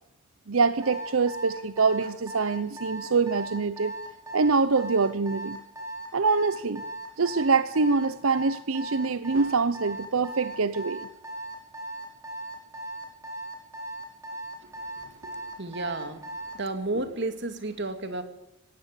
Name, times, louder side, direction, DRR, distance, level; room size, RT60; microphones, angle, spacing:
voice 1, 0.5-3.9 4.3-5.6 6.1-6.8 7.2-11.1, right 4 dB, 90° right, 13 dB, 0.8 m, -25 dB
Alarm, 0.8-16.6, right 1 dB, 15° right, 5.1 m, -37 dB
voice 2, 14.6-16.2 16.5-18.2, right 2 dB, 55° right, 8 dB, 2.5 m, -33 dB
20.0 x 17.0 x 8.4 m, 0.80 s
head